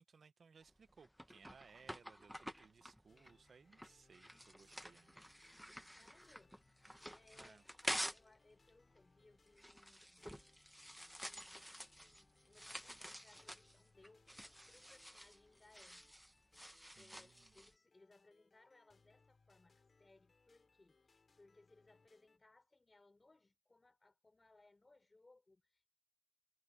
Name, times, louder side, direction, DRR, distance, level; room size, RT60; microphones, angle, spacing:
voice 1, 0.0-5.3 7.3-7.6 17.0-17.6, right 5 dB, 75° right, 1.1 m, -64 dB
sound 1, 0.6-8.4 8.7-17.7, equal, ahead, 1.0 m, -49 dB
sound 2, 3.1-22.4, left 4 dB, 55° left, 7.6 m, -74 dB
voice 2, 5.9-6.6 7.1-10.3 11.2-16.1 16.9-25.9, left 2 dB, 35° left, 6.5 m, -68 dB
wide cardioid pair, 80°, 0 cm